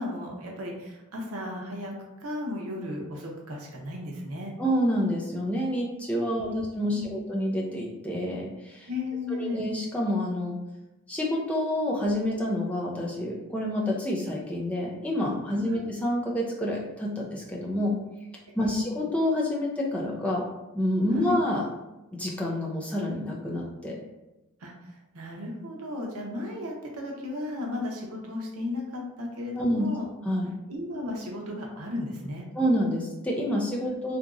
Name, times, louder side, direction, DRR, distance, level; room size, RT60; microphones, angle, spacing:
voice 1, 0.0-1.9 2.2-4.5 6.4-6.6 6.9-7.2 8.9-9.7 15.5-15.9 18.6-18.9 21.1-21.4 24.6-24.7 25.1-30.1 30.7-32.5, left 2 dB, 80° right, 0 dB, 0.7 m, -34 dB
voice 2, 4.6-8.9 9.4-10.6 11.1-18.0 18.6-20.5 20.7-21.7 22.1-24.0 29.6-29.9 30.2-30.6 32.5-34.2, equal, 5° left, -3 dB, 0.4 m, -28 dB
2.9 x 2.5 x 2.4 m, 0.97 s
head